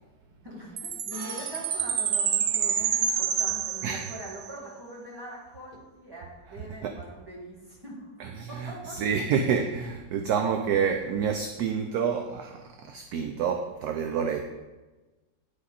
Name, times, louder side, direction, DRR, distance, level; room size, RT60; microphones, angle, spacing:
voice 1, 0.4-8.1 8.5-9.2, right 1 dB, 15° right, -4 dB, 2.0 m, -43 dB
Chime, 0.8-4.5, right 8 dB, 85° right, 0.6 m, -28 dB
sound 1, 1.1-5.8, left 1 dB, 30° left, 1.1 m, -50 dB
voice 2, 8.2-14.4, right 6 dB, 70° right, 5 dB, 1.0 m, -28 dB
10.0 x 4.9 x 4.2 m, 1.2 s
omnidirectional pair, 2.0 m